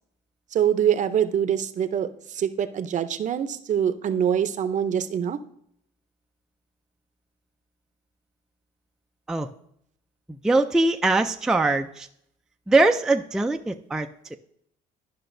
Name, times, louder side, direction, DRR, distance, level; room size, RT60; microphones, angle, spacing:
voice 1, 0.5-5.4, right 9 dB, 45° right, 11 dB, 0.6 m, -24 dB
voice 2, 10.4-12.1 12.7-14.4, right 2 dB, 5° right, 5 dB, 0.3 m, -22 dB
12.0 x 5.6 x 2.6 m, 0.70 s
cardioid pair, 110°, 17 cm